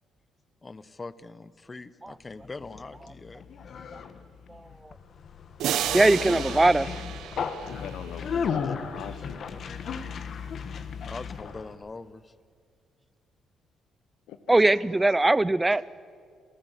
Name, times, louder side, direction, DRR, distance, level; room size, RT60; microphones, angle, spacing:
voice 1, 0.6-3.4 8.6-8.7 11.0-12.3, left 3 dB, 25° left, 16 dB, 0.9 m, -42 dB
Conversation, 2.3-11.7, left 6 dB, 60° left, 1.4 m, -35 dB
voice 2, 4.5-4.9 5.9-6.9 14.5-15.8, right 2 dB, 15° right, 19 dB, 0.5 m, -21 dB
sound 1, 5.6-8.3, right 10 dB, 80° right, 1.1 m, -32 dB
voice 3, 6.1-6.4 7.6-9.4 14.3-14.6, left 9 dB, 90° left, 10 dB, 1.0 m, -42 dB
28.0 x 13.5 x 8.2 m, 2.1 s
cardioid pair, 90°, 0 cm